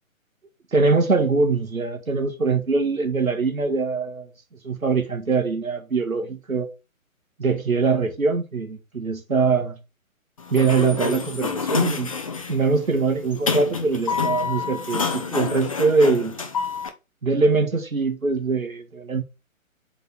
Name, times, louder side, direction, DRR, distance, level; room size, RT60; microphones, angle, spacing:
voice 1, 0.7-4.3 4.6-6.7 7.4-9.8 10.5-12.1 12.5-16.3 17.2-19.2, right 4 dB, 80° right, 1.5 m, -22 dB
Sliding door, 10.4-16.9, left 4 dB, 25° left, 0.5 m, -27 dB
4.8 x 3.9 x 5.3 m
figure-of-eight pair, 135°, 41 cm